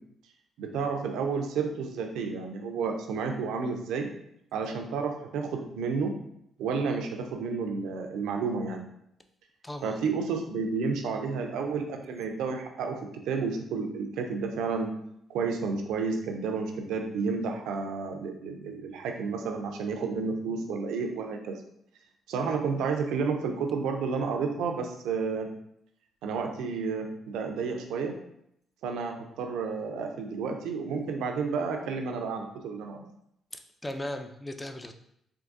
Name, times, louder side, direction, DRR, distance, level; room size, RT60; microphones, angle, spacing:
voice 1, 0.6-4.1 4.5-6.1 6.6-8.9 9.8-13.0 13.3-14.9 15.3-21.6 22.3-25.5 26.2-28.1 28.8-33.0, right 5 dB, 80° right, 4 dB, 0.4 m, -31 dB
voice 2, 9.6-10.1 33.5-34.9, left 1 dB, 15° left, 7 dB, 0.4 m, -37 dB
3.5 x 2.5 x 2.5 m, 0.75 s
supercardioid pair, 60°, 0 cm